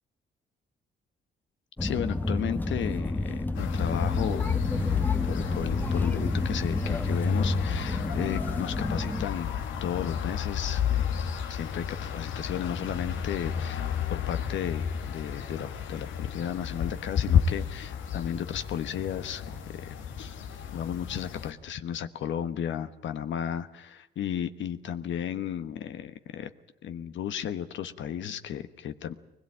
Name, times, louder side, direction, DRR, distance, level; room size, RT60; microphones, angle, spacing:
voice 1, 1.8-5.0 5.3-9.6 9.8-11.2 11.5-20.4 20.7-26.5 26.8-29.1, left 9 dB, 70° left, 10 dB, 1.3 m, -34 dB
sound 1, 1.8-9.3, left 2 dB, 10° left, 1.0 m, -31 dB
sound 2, 3.5-21.5, left 7 dB, 85° left, 2.1 m, -31 dB
22.0 x 20.5 x 8.8 m, 0.90 s
cardioid pair, 90°, 20 cm